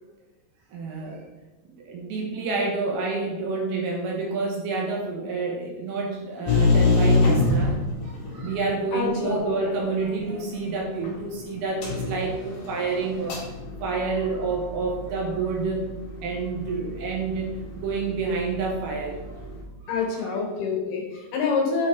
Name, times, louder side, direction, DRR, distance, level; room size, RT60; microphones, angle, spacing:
voice 1, 0.7-1.2 1.8-13.4 13.8-15.8 16.2-19.4 20.2-20.3, right 4 dB, 70° right, -1 dB, 2.9 m, -28 dB
sound 1, 6.5-8.5 11.0-11.1 11.8-19.6, left 3 dB, 45° left, 2.5 m, -27 dB
voice 2, 8.9-9.5 19.9-21.9, left 5 dB, 70° left, 1 dB, 2.8 m, -26 dB
8.4 x 6.3 x 3.8 m, 1.1 s
omnidirectional pair, 5.1 m